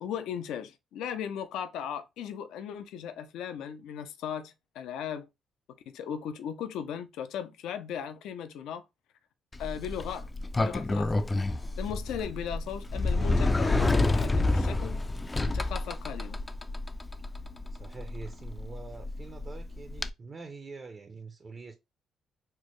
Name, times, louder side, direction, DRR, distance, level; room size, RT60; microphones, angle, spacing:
voice 1, 0.0-5.3 5.9-8.8 9.6-10.3 10.6-11.1 11.8-15.0 15.5-16.4, left 8 dB, 85° left, 0.4 m, -37 dB
Sliding door, 9.5-20.1, left 2 dB, 20° left, 0.3 m, -29 dB
voice 2, 17.7-21.8, right 4 dB, 40° right, 0.5 m, -45 dB
4.4 x 2.1 x 3.0 m
cardioid pair, 90°, 0 cm